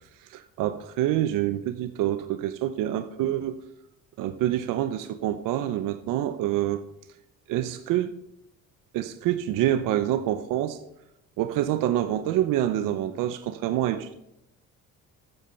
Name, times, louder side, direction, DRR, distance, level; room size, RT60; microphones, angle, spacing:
voice 1, 0.3-3.6 4.2-6.8 7.5-8.1 8.9-10.8 11.4-14.1, right 12 dB, 80° right, 0.8 m, -26 dB
13.5 x 9.3 x 4.5 m
cardioid pair, 110°, 32 cm